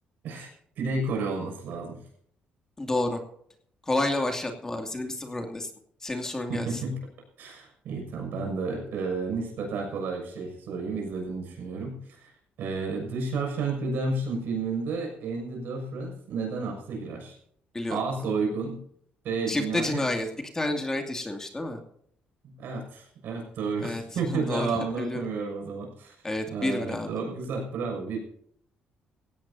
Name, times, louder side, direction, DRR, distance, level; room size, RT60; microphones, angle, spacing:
voice 1, 0.8-2.0 6.5-7.0 7.4-12.3 12.6-17.3 17.9-18.8 19.2-20.0 22.4-26.1 26.5-28.2, right 4 dB, 70° right, 3 dB, 6.6 m, -31 dB
voice 2, 2.8-3.2 3.9-5.7 6.0-6.8 17.7-18.0 19.5-21.8 23.8-24.0 24.3-24.7 25.0-25.2 26.2-27.1, left 2 dB, 15° left, 4 dB, 2.5 m, -29 dB
17.5 x 16.5 x 2.8 m, 0.65 s
cardioid pair, 125°, 3 cm